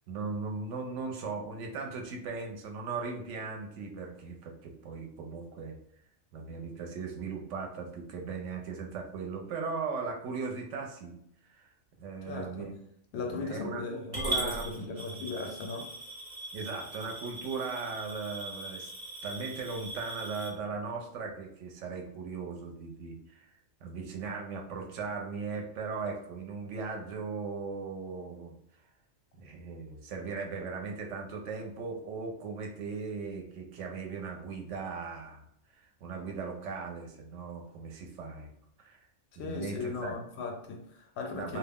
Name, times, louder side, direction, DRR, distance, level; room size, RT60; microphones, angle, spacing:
voice 1, 0.1-5.8 6.3-11.2 11.5-12.8 13.3-13.8 14.1-14.9 16.5-18.9 19.2-23.5 23.8-28.6 29.4-38.5 38.8-39.0 39.4-40.1 41.3-41.6, right 4 dB, 70° right, 2 dB, 0.8 m, -38 dB
voice 2, 12.2-12.7 13.1-15.9 39.4-41.6, left 4 dB, 65° left, 3 dB, 0.7 m, -37 dB
Coin (dropping) / Glass, 14.1-20.5, right 1 dB, 40° right, 0.7 m, -39 dB
2.3 x 2.0 x 3.4 m, 0.73 s
omnidirectional pair, 1.4 m